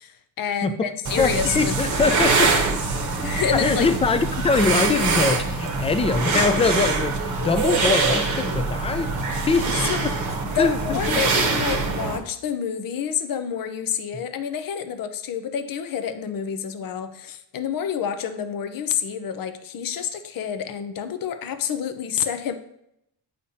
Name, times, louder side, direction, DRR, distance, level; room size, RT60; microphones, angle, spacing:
voice 1, 0.0-1.8 3.2-3.9 9.8-10.1 10.5-22.5, left 8 dB, 50° left, 10 dB, 0.7 m, -28 dB
sound 1, 1.0-12.2, right 4 dB, 40° right, 1.0 m, -24 dB
voice 2, 1.5-2.6 3.2-3.3 3.5-10.1 10.6-11.2, left 4 dB, 15° left, 10 dB, 0.3 m, -23 dB
8.3 x 5.0 x 2.8 m, 0.78 s
cardioid pair, 110°, 44 cm